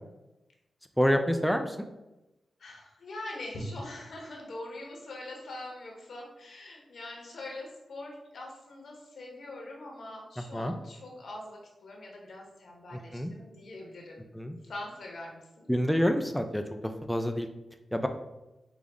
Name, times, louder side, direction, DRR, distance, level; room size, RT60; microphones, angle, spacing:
voice 1, 1.0-1.9 10.4-10.7 12.9-13.3 14.3-14.6 15.7-17.5 17.9-18.1, equal, 5° left, 6 dB, 0.3 m, -28 dB
voice 2, 2.6-14.2 14.6-15.7, left 1 dB, 75° left, 0 dB, 1.0 m, -43 dB
5.0 x 2.0 x 3.5 m, 0.99 s
cardioid pair, 55°, 0 cm